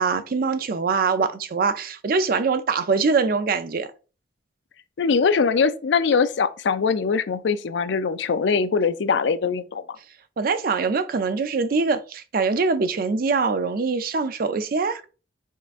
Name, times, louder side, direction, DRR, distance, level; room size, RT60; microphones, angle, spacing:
voice 1, 0.0-3.9 10.4-15.1, right 4 dB, 55° right, 0.5 m, -23 dB
voice 2, 5.0-9.8, left 5 dB, 85° left, 0.4 m, -22 dB
5.5 x 3.5 x 2.5 m
head